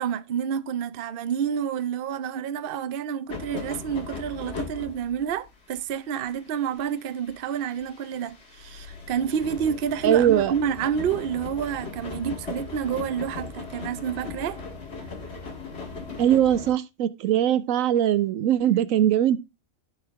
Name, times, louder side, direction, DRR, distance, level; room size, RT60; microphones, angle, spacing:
voice 1, 0.0-14.6, right 8 dB, 55° right, 0.7 m, -29 dB
sound 1, 3.3-5.5 5.8-5.9 6.2-16.7, left 4 dB, 50° left, 2.1 m, -38 dB
voice 2, 10.0-10.5 16.2-19.4, right 11 dB, 80° right, 1.1 m, -21 dB
14.0 x 4.7 x 3.5 m
omnidirectional pair, 1.4 m